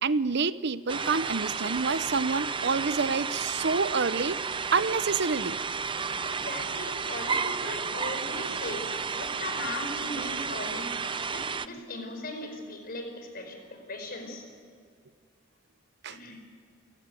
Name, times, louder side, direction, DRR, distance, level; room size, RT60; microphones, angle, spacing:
voice 1, 0.0-4.4 4.7-5.6 16.0-16.2, right 4 dB, 60° right, 15 dB, 0.8 m, -27 dB
sound 1, 0.9-11.7, right 5 dB, 25° right, 0.6 m, -32 dB
voice 2, 6.2-10.9 11.3-14.4 16.1-16.4, left 2 dB, 50° left, 5 dB, 4.9 m, -38 dB
29.5 x 16.5 x 9.3 m, 2.1 s
head